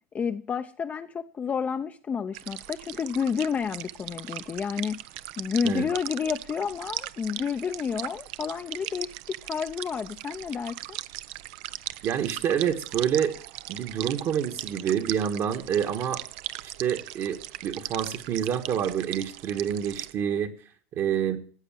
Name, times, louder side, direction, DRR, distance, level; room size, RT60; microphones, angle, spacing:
voice 1, 0.1-5.0 5.4-11.0, left 6 dB, 25° left, 0.6 m, -30 dB
sound 1, 2.3-20.1, right 17 dB, 65° right, 0.6 m, -39 dB
voice 2, 12.0-13.4 13.7-16.2 16.6-20.5 20.9-21.4, right 9 dB, 45° right, 1.5 m, -27 dB
14.5 x 8.0 x 7.5 m
supercardioid pair, 120°, 7 cm